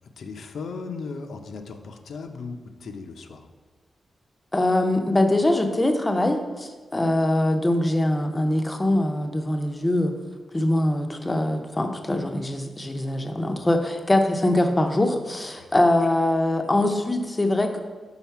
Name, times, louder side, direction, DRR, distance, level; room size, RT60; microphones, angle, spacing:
voice 1, 0.2-3.5 15.6-15.7, left 4 dB, 80° left, 5 dB, 0.5 m, -37 dB
voice 2, 4.5-10.1 10.5-17.8, left 1 dB, 15° left, 4 dB, 0.5 m, -23 dB
5.6 x 3.9 x 4.6 m, 1.4 s
wide cardioid pair, 140°, 0 cm